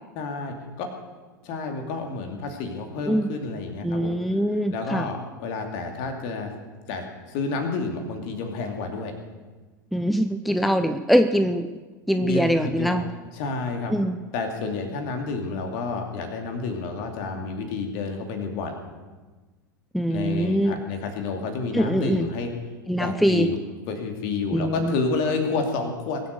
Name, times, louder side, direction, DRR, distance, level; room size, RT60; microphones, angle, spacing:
voice 1, 0.2-0.9 1.4-4.2 4.7-6.5 6.9-9.1 12.1-13.0 13.3-13.9 14.3-18.8 20.1-22.5 23.0-23.6 23.9-26.2, left 4 dB, 45° left, 5 dB, 2.7 m, -30 dB
voice 2, 3.8-5.1 9.9-11.7 12.1-13.1 13.9-14.2 19.9-20.8 21.7-22.3 22.9-23.5 24.5-24.9, equal, ahead, 10 dB, 0.5 m, -23 dB
22.5 x 8.0 x 6.6 m, 1.3 s
figure-of-eight pair, 85°, 11 cm